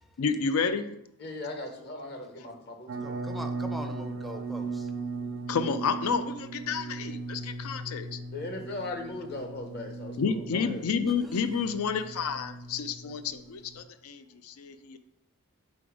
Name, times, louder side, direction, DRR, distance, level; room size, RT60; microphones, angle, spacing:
voice 1, 0.2-0.9 5.5-8.2 10.2-15.0, left 5 dB, 75° left, 10 dB, 0.4 m, -30 dB
voice 2, 1.2-3.2 8.3-10.9, left 2 dB, 45° left, 4 dB, 0.9 m, -38 dB
sound 1, 2.9-13.8, right 3 dB, 60° right, 0.4 m, -38 dB
voice 3, 3.0-4.9 11.1-11.6, equal, ahead, 4 dB, 0.5 m, -42 dB
5.3 x 3.9 x 4.9 m, 0.80 s
head